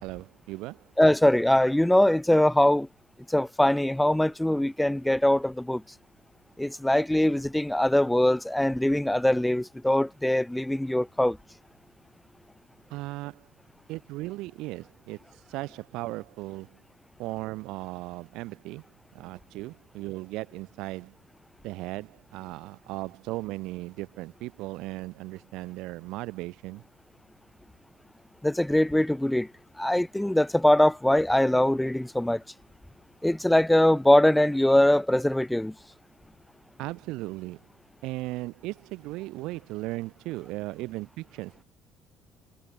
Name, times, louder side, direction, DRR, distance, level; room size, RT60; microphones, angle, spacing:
voice 1, 0.0-0.9 12.9-13.5 13.9-16.8 17.2-18.9 19.1-21.2 21.6-26.8 36.8-37.6 38.0-41.6, right 20 dB, 85° right, 2.1 m, -37 dB
voice 2, 1.0-2.9 3.3-5.8 6.6-11.4 28.4-29.5 29.8-32.4 33.2-35.7, left 1 dB, 5° left, 0.3 m, -22 dB
cardioid pair, 155°, 0 cm